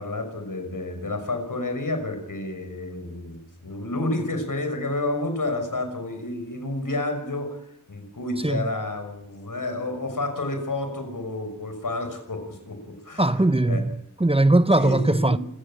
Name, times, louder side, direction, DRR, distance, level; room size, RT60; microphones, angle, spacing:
voice 1, 0.0-13.8 14.8-15.4, left 2 dB, 80° left, 6.1 m, -30 dB
voice 2, 13.2-15.4, right 2 dB, 15° right, 1.0 m, -20 dB
26.5 x 16.0 x 8.9 m
wide cardioid pair, 60°, 32 cm